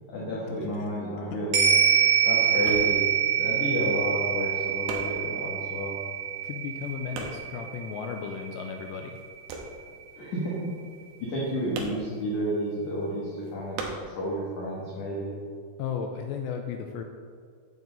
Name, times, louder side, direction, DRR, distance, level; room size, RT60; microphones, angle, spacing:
voice 1, 0.1-1.8 2.2-6.0 10.1-10.7 11.2-15.3, equal, 55° left, -7 dB, 2.3 m, -31 dB
sound 1, 0.6-8.7 8.9-14.8 15.1-16.1, right 3 dB, 75° right, 2.7 m, -41 dB
sound 2, 1.5-10.1 10.4-10.5, right 8 dB, 60° right, 2.5 m, -26 dB
voice 2, 6.4-9.2 15.8-17.0, left 7 dB, 85° left, 4 dB, 2.5 m, -34 dB
9.2 x 8.0 x 4.0 m, 2.1 s
omnidirectional pair, 5.4 m